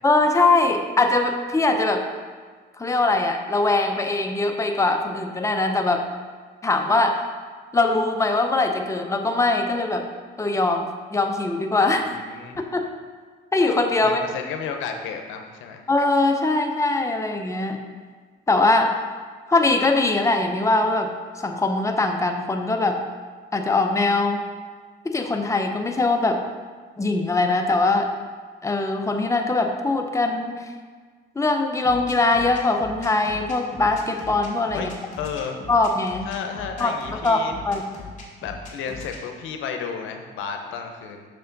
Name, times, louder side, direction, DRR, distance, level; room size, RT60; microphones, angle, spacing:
voice 1, 0.0-2.1 2.8-6.1 6.6-7.2 7.7-10.1 10.4-12.1 12.6-12.9 13.5-14.2 15.9-17.8 18.5-18.9 19.5-21.1 21.4-23.0 23.5-24.4 25.0-26.4 27.0-28.1 28.6-30.7 31.4-34.9 35.7-36.3 36.8-36.9 37.2-37.8, left 2 dB, 15° left, 4 dB, 0.7 m, -21 dB
voice 2, 12.0-12.6 14.0-15.8 34.7-35.6 36.2-37.5 38.4-41.3, left 6 dB, 90° left, 5 dB, 0.8 m, -32 dB
sound 1, 31.8-39.2, left 4 dB, 35° left, 2.0 m, -39 dB
6.7 x 6.3 x 4.0 m, 1.5 s
cardioid pair, 90°, 20 cm